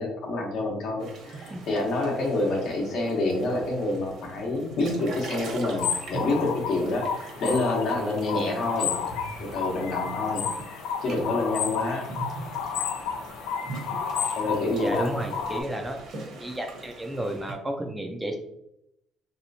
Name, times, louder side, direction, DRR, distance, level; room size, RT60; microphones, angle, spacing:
voice 1, 0.0-9.0 9.4-12.1 14.4-15.1, left 2 dB, 60° left, 0 dB, 1.0 m, -28 dB
sound 1, 1.0-17.5, right 2 dB, 60° right, 0.9 m, -42 dB
sound 2, 5.8-15.6, left 6 dB, 85° left, 0.4 m, -31 dB
voice 2, 14.8-16.0 16.4-18.4, right 1 dB, 10° right, 3 dB, 0.4 m, -32 dB
3.1 x 2.8 x 2.7 m, 0.78 s
cardioid pair, 130°, 0 cm